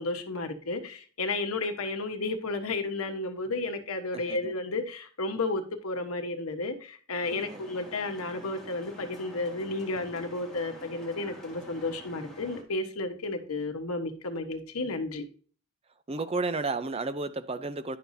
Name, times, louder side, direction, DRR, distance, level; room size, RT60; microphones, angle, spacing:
voice 1, 0.0-15.2, left 2 dB, 85° left, 1.2 m, -32 dB
voice 2, 4.1-4.5 7.3-7.6 16.1-18.0, right 3 dB, 25° right, 0.5 m, -32 dB
sound 1, 7.2-12.6, equal, ahead, 1.6 m, -48 dB
10.5 x 6.6 x 2.7 m
head